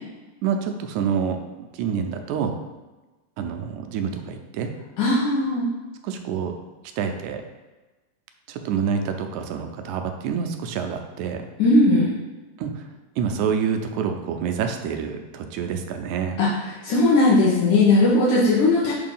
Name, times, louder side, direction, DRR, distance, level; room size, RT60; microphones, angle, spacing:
voice 1, 0.4-2.5 3.4-4.7 6.0-6.5 7.0-7.4 8.5-11.5 12.6-12.9 13.2-16.4, right 7 dB, 80° right, 5 dB, 1.9 m, -27 dB
voice 2, 5.0-5.7 11.6-12.1 16.4-16.5 16.8-18.9, left 2 dB, 75° left, -7 dB, 2.5 m, -18 dB
6.8 x 2.8 x 5.4 m, 1.2 s
omnidirectional pair, 3.6 m